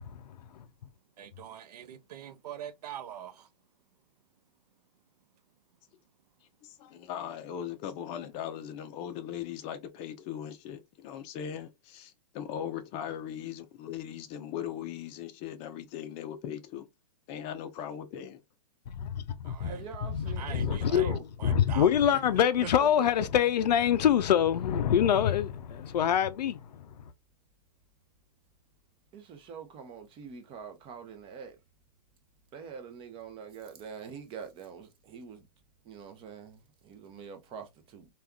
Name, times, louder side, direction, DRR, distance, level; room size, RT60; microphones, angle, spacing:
voice 1, 1.2-3.5 19.4-19.8 20.4-21.1 21.4-22.2 22.6-23.3, right 9 dB, 70° right, 0.6 m, -43 dB
voice 2, 6.6-16.9 17.3-18.4, left 9 dB, 30° left, 0.6 m, -39 dB
voice 3, 19.0-19.8 20.1-26.6, left 9 dB, 80° left, 0.4 m, -25 dB
voice 4, 19.5-21.2 29.1-31.6 32.5-35.4 35.8-38.1, right 6 dB, 25° right, 0.7 m, -44 dB
3.4 x 2.4 x 2.2 m
hypercardioid pair, 130°, 21 cm